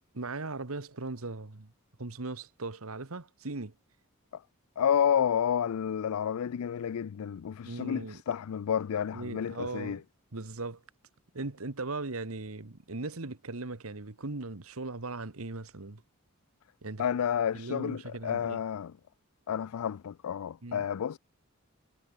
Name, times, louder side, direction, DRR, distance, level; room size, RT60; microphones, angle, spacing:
voice 1, 0.1-1.7 2.0-3.8 7.6-8.2 9.1-10.0 10.3-10.8 11.3-16.0 16.8-17.0 17.5-18.6 20.6-20.8, right 3 dB, 75° right, 1.5 m, -38 dB
voice 2, 4.8-10.0 17.0-18.9 19.5-21.2, left 8 dB, 85° left, 0.4 m, -30 dB
head